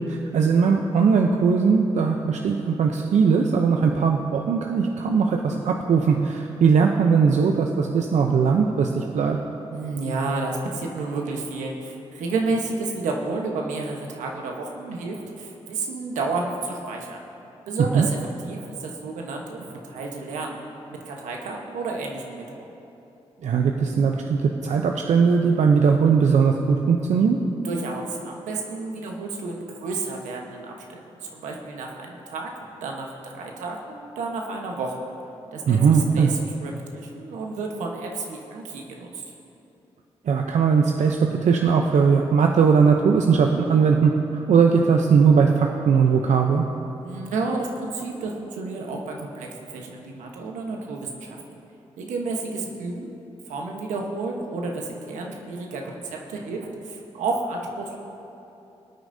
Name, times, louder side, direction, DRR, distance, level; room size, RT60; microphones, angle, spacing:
voice 1, 0.0-9.4 17.9-18.1 23.4-27.4 35.7-36.3 40.3-46.7, right 5 dB, 70° right, 2 dB, 0.7 m, -19 dB
voice 2, 9.7-17.2 17.7-20.6 20.9-22.6 27.6-35.0 35.5-39.2 47.0-51.4 52.0-53.1 53.4-58.0, right 3 dB, 90° right, 0 dB, 1.2 m, -31 dB
19.5 x 9.0 x 2.7 m, 2.9 s
supercardioid pair, 45°, 12 cm